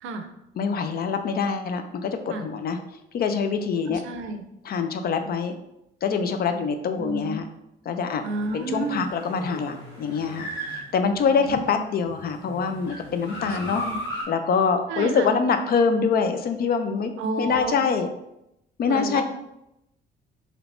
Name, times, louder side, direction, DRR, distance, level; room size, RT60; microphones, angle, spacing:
voice 1, 0.6-2.8 3.1-4.0 4.6-5.5 6.0-7.5 7.9-8.2 8.5-10.5 10.9-13.8 14.3-17.1 17.4-18.1 18.8-19.2, left 5 dB, 50° left, 7 dB, 0.4 m, -24 dB
voice 2, 3.9-4.4 7.0-7.5 8.2-9.1 11.3-11.8 13.4-14.0 14.9-15.4 17.2-17.8 18.8-19.2, right 3 dB, 85° right, 6 dB, 0.5 m, -31 dB
sound 1, 8.0-11.5 12.0-14.2, equal, 70° left, 1.1 m, -37 dB
3.3 x 3.0 x 2.5 m, 0.85 s
cardioid pair, 90°, 20 cm